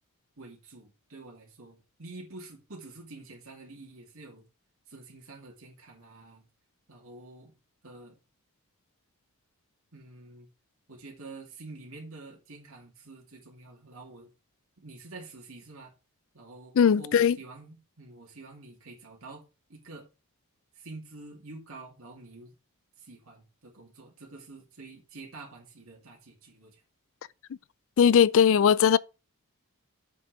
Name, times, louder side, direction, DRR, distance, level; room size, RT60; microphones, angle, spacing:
voice 1, 0.4-4.4 4.9-6.4 6.9-7.5 7.8-8.2 9.9-10.5 10.9-14.3 14.8-15.9 16.3-20.1 20.7-22.5 23.0-26.8, right 3 dB, 65° right, 2.5 m, -47 dB
voice 2, 16.8-17.4 28.0-29.0, left 7 dB, 60° left, 0.4 m, -19 dB
7.7 x 6.6 x 4.8 m
head